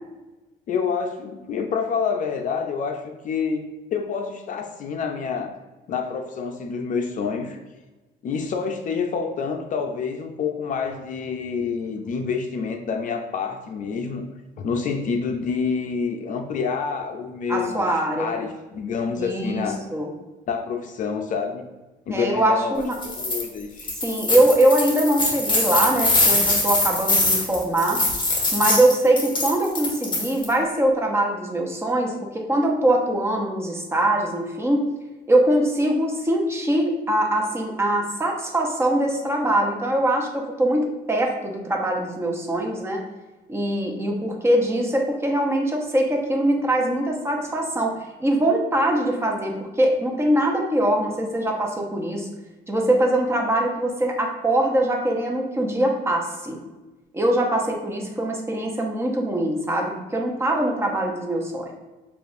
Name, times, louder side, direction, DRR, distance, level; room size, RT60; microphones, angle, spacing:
voice 1, 0.7-3.6 3.9-5.6 5.9-7.6 8.2-14.3 14.6-19.9 20.5-21.7 22.1-24.0, left 5 dB, 50° left, 4 dB, 0.5 m, -27 dB
voice 2, 17.5-18.4 19.2-19.7 19.9-20.1 22.1-22.9 24.0-28.0 28.5-34.9 35.3-43.0 43.5-47.9 48.2-52.3 52.7-56.6 57.1-61.7, right 1 dB, 15° right, 1 dB, 0.8 m, -22 dB
sound 1, 22.9-23.4 23.8-30.5, left 2 dB, 30° left, 1.4 m, -23 dB
6.8 x 2.4 x 2.5 m, 1.1 s
cardioid pair, 110°, 17 cm